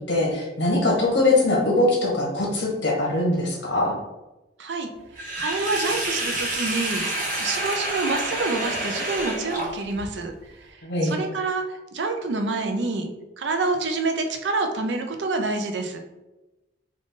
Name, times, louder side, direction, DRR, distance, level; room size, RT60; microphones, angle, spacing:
voice 1, 0.0-3.9 10.8-11.2, left 2 dB, 70° left, -3 dB, 1.3 m, -22 dB
voice 2, 4.6-4.9 5.4-10.3 10.6-10.8 11.0-13.1 13.4-16.0, right 3 dB, 75° right, 5 dB, 0.5 m, -27 dB
Sink (filling or washing), 5.2-10.1, right 1 dB, 50° right, 1.0 m, -28 dB
3.7 x 2.5 x 3.7 m, 1.0 s
head